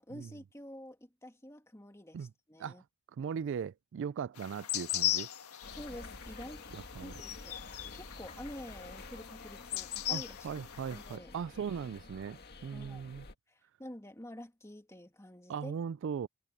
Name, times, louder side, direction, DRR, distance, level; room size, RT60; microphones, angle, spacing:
voice 1, 0.0-2.8 5.7-6.7 7.0-7.6 7.9-10.4 10.9-11.3 12.7-13.1 13.5-15.8, left 1 dB, 15° left, 2.1 m, -48 dB
voice 2, 3.1-5.3 6.7-7.1 10.1-13.2 15.5-16.3, right 7 dB, 55° right, 0.3 m, -39 dB
sound 1, 4.4-11.2, left 13 dB, 90° left, 1.6 m, -38 dB
sound 2, 5.6-13.3, left 2 dB, 45° left, 2.1 m, -50 dB
head